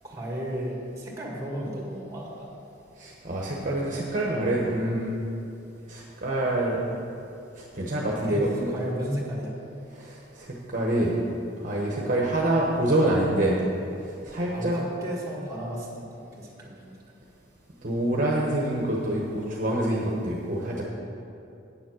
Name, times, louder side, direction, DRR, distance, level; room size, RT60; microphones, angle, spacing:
voice 1, 0.0-2.5 8.2-9.5 14.5-17.0, equal, 20° right, -2 dB, 1.8 m, -34 dB
voice 2, 3.0-5.2 5.9-6.8 7.6-8.7 9.9-11.2 11.6-13.6 14.2-14.8 17.8-20.8, right 1 dB, 45° right, -3 dB, 1.1 m, -26 dB
8.9 x 7.2 x 6.3 m, 2.7 s
head